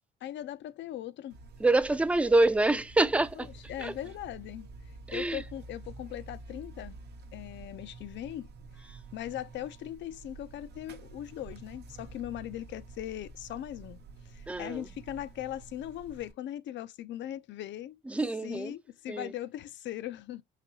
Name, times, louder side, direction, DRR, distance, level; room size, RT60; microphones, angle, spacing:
voice 1, 0.2-1.4 3.3-4.7 5.1-7.0 7.3-8.5 9.1-18.0 18.4-20.4, left 12 dB, 65° left, 0.4 m, -39 dB
Buzz, 1.3-16.3, right 3 dB, 60° right, 0.6 m, -49 dB
voice 2, 1.6-3.5 3.8-3.9 5.1-5.4 14.5-14.8 18.1-18.7 19.1-19.3, right 2 dB, 5° right, 0.3 m, -26 dB
4.0 x 2.6 x 2.6 m
cardioid pair, 90°, 20 cm